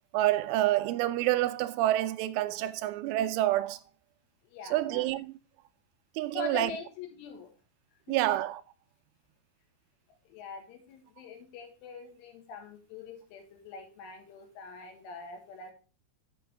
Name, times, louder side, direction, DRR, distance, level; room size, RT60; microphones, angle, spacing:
voice 1, 0.1-3.8 4.7-5.3 6.2-6.7 8.1-8.6, right 15 dB, 85° right, 2.9 m, -28 dB
voice 2, 4.5-5.1 6.4-7.5 8.1-8.2 10.3-15.7, left 4 dB, 80° left, 4.0 m, -43 dB
8.5 x 6.7 x 3.3 m
omnidirectional pair, 5.6 m